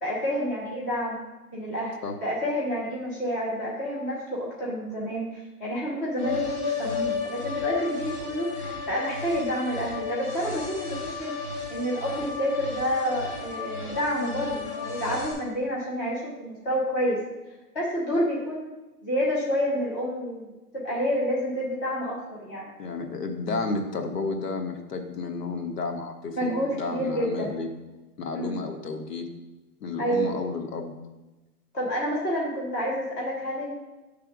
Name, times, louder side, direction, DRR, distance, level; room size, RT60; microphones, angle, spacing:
voice 1, 0.0-1.2 1.5-1.9 2.2-11.3 11.7-17.2 17.7-18.7 19.0-22.7 26.3-27.6 28.3-28.6 30.0-30.3 31.7-33.7, equal, 10° left, -5 dB, 0.7 m, -29 dB
sound 1, 6.1-15.3, left 5 dB, 30° left, 2.5 m, -33 dB
voice 2, 22.8-27.7 28.2-29.3 29.8-30.9, left 3 dB, 80° left, 4 dB, 1.4 m, -32 dB
8.0 x 3.5 x 6.0 m, 1.1 s
hypercardioid pair, 170°, 47 cm